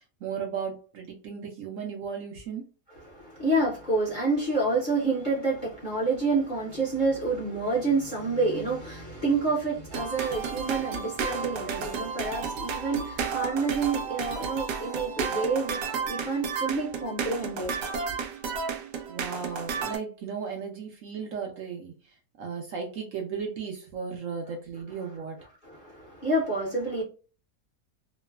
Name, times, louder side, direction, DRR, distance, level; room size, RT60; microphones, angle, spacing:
voice 1, 0.0-2.7 19.1-25.4, right 6 dB, 65° right, 0.9 m, -35 dB
voice 2, 3.0-17.7 25.6-27.0, right 3 dB, 40° left, 0.7 m, -28 dB
sound 1, 9.9-20.0, right 6 dB, 80° right, 1.2 m, -32 dB
3.0 x 2.1 x 2.2 m
omnidirectional pair, 1.7 m